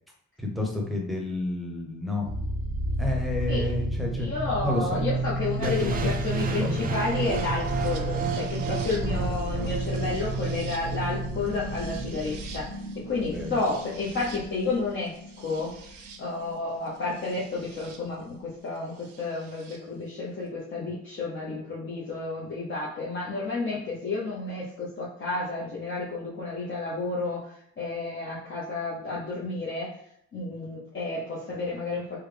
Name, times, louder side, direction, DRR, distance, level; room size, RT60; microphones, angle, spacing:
voice 1, 0.4-2.3 3.0-4.3 4.6-5.0 5.6-6.1 6.6-6.9 13.2-13.6, left 1 dB, ahead, -1 dB, 0.9 m, -30 dB
sound 1, 2.2-18.0 19.1-19.8, right 2 dB, 90° right, 0.7 m, -32 dB
voice 2, 4.2-15.7 16.2-27.4 27.8-29.9 30.3-32.0, left 3 dB, 40° left, -6 dB, 0.8 m, -31 dB
sound 2, 5.6-11.6, right 5 dB, 30° right, 0.4 m, -34 dB
3.3 x 2.2 x 3.3 m, 0.70 s
cardioid pair, 90°, 30 cm